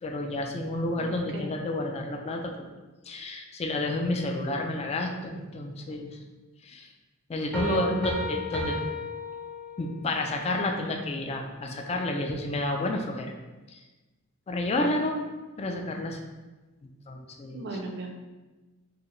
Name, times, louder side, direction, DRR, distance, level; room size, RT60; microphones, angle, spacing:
voice 1, 0.0-2.7 3.1-6.2 6.6-6.9 7.3-8.8 9.8-13.3 13.7-13.8 14.5-15.3 15.6-16.2 17.1-17.6, left 2 dB, 30° left, 3 dB, 0.3 m, -30 dB
voice 2, 1.0-1.5 7.5-8.0 12.5-12.6 17.5-18.1, right 3 dB, 60° right, 2 dB, 0.4 m, -35 dB
sound 1, 7.5-10.0, left 2 dB, 5° left, 0.7 m, -33 dB
4.7 x 2.1 x 3.0 m, 1.2 s
head